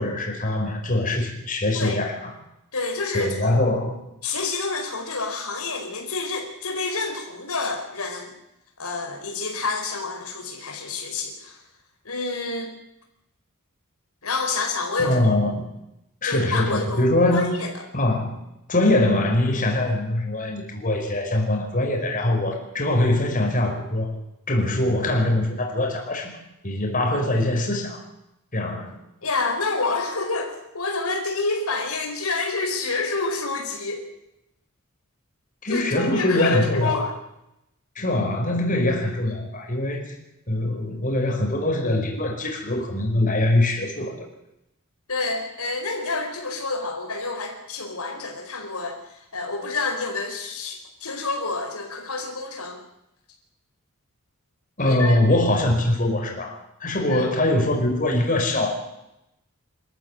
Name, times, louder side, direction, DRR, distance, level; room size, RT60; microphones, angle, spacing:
voice 1, 0.0-2.3 3.1-4.0 15.0-15.6 16.2-17.5 17.9-18.4 18.7-24.1 24.5-26.3 26.6-28.0 28.5-29.0 35.6-37.0 38.0-40.0 40.5-44.2 54.8-58.7, left 1 dB, 40° left, 1 dB, 5.3 m, -23 dB
voice 2, 2.7-3.6 4.2-8.3 8.8-11.6 12.0-12.7 14.2-15.3 16.2-17.7 29.2-34.1 35.7-37.1 45.1-52.8 54.8-55.2 57.1-57.3, left 3 dB, 85° left, 2 dB, 4.9 m, -28 dB
26.0 x 14.0 x 9.3 m, 0.88 s
head